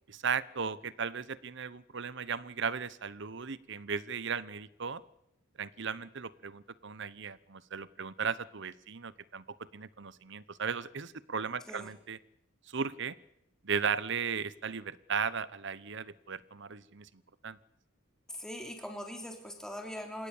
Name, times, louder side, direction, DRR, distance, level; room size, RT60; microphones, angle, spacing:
voice 1, 0.1-5.0 5.6-9.4 9.7-12.2 12.7-13.2 13.6-17.1 17.4-17.6, right 6 dB, 60° right, 18 dB, 0.9 m, -36 dB
voice 2, 18.3-20.3, equal, 5° left, 3 dB, 3.3 m, -41 dB
28.0 x 17.5 x 7.2 m, 0.83 s
head